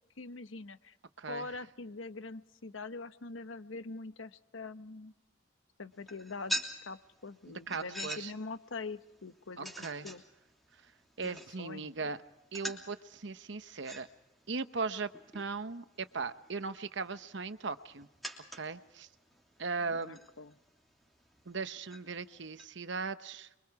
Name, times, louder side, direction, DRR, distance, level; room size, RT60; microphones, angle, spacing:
voice 1, 0.2-0.9 1.3-5.1 5.8-6.6 6.9-9.7 10.0-10.2 11.2-12.1 19.9-20.6, left 3 dB, 75° left, 11 dB, 1.0 m, -44 dB
sound 1, 5.9-22.7, right 1 dB, ahead, 3.0 m, -47 dB
voice 2, 7.5-8.3 9.6-10.1 11.2-12.2 12.5-14.1 14.5-18.1 18.5-19.1 19.6-20.2 21.5-23.5, right 4 dB, 60° right, 11 dB, 0.9 m, -38 dB
27.5 x 23.5 x 4.7 m, 0.95 s
head